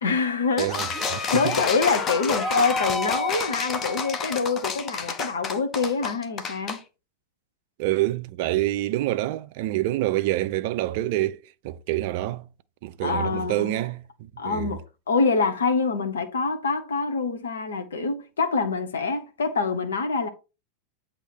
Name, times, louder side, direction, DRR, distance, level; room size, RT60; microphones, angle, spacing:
voice 1, 0.0-0.7 1.3-6.8 13.0-13.7 14.4-14.8 15.1-20.3, left 4 dB, 65° left, 0.9 m, -25 dB
sound 1, 0.6-6.8, left 4 dB, 25° left, 0.8 m, -28 dB
voice 2, 0.6-1.6 2.4-2.5 7.8-12.5 12.8-14.8, right 15 dB, 50° right, 0.3 m, -27 dB
8.0 x 2.9 x 4.3 m
figure-of-eight pair, 90°, 0 cm